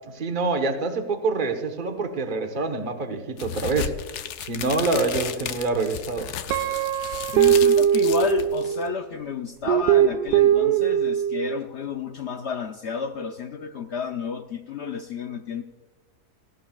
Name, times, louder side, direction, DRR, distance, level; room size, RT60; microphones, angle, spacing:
voice 1, 0.1-3.9 4.4-6.3, right 3 dB, 35° right, 5 dB, 1.2 m, -26 dB
sound 1, 3.4-8.9, left 9 dB, 80° left, 1.2 m, -34 dB
Guitar, 6.5-9.0 9.7-11.6, right 9 dB, 85° right, 1.1 m, -20 dB
voice 2, 7.3-15.6, left 6 dB, 60° left, 6 dB, 0.7 m, -31 dB
18.0 x 15.5 x 2.4 m, 1.2 s
omnidirectional pair, 1.7 m